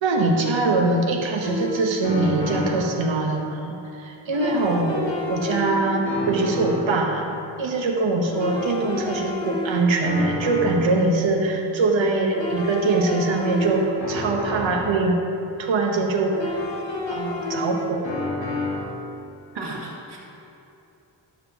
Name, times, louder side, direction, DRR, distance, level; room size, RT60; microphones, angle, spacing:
voice 1, 0.0-7.3 7.6-15.2 15.6-16.5 17.1-18.2, right 3 dB, 80° right, 1 dB, 1.1 m, -23 dB
sound 1, 1.4-3.0 4.3-7.0 8.3-11.0 12.3-15.0 16.3-19.0, left 1 dB, 75° left, 1.9 m, -29 dB
voice 2, 19.5-20.2, right 2 dB, 60° right, -5 dB, 2.0 m, -33 dB
11.5 x 7.0 x 3.0 m, 2.8 s
wide cardioid pair, 125°, 46 cm